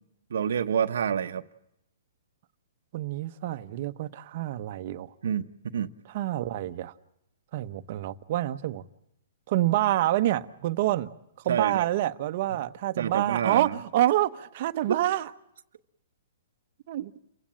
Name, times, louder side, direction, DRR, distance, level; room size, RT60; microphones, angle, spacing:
voice 1, 0.3-1.4 5.2-5.5 5.7-5.9 11.5-11.9 13.0-13.7 14.9-15.0, right 8 dB, 75° right, 1.0 m, -27 dB
voice 2, 2.9-5.1 6.1-6.9 7.5-8.8 9.5-11.1 11.4-15.3 16.9-17.2, right 14 dB, 45° right, 1.0 m, -27 dB
29.5 x 16.0 x 8.9 m
hypercardioid pair, 155°, 0 cm